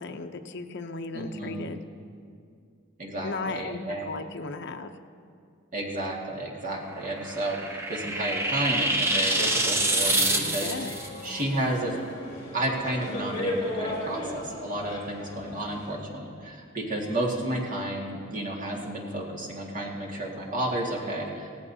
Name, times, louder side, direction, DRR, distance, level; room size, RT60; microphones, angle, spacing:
voice 1, 0.0-1.9 3.2-4.9 10.4-10.9, left 3 dB, 60° left, 6 dB, 0.7 m, -36 dB
voice 2, 1.1-1.7 3.0-4.1 5.7-10.8 11.2-12.0 12.5-21.5, right 1 dB, 40° right, -2 dB, 1.9 m, -32 dB
sound 1, 6.9-11.1, right 1 dB, 15° right, 0.8 m, -26 dB
sound 2, 9.3-16.0, left 1 dB, 35° left, 3.4 m, -36 dB
17.5 x 16.0 x 2.8 m, 2.3 s
head